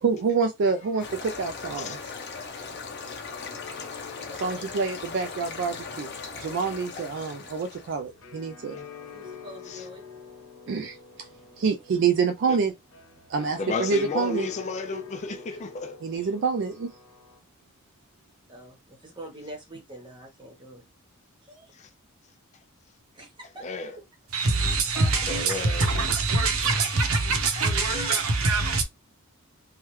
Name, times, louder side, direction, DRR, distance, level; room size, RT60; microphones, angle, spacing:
voice 1, 0.0-2.0 4.4-6.1 6.4-8.8 10.7-11.3 11.6-12.7 13.3-14.5 16.0-16.9, right 5 dB, 55° right, 0.3 m, -27 dB
sound 1, 1.0-8.0, left 5 dB, 50° left, 0.8 m, -39 dB
sound 2, 2.2-17.4, left 6 dB, 75° left, 1.0 m, -47 dB
voice 2, 4.1-4.6 9.1-10.0 18.5-20.8 21.4-21.7 23.1-23.7, right 1 dB, 20° right, 1.0 m, -45 dB
voice 3, 13.6-16.0 21.7-21.9 23.6-24.0 25.1-25.9 27.6-28.2, left 3 dB, 30° left, 0.4 m, -33 dB
voice 4, 24.3-28.8, right 3 dB, 70° right, 0.8 m, -24 dB
3.1 x 2.2 x 3.1 m
head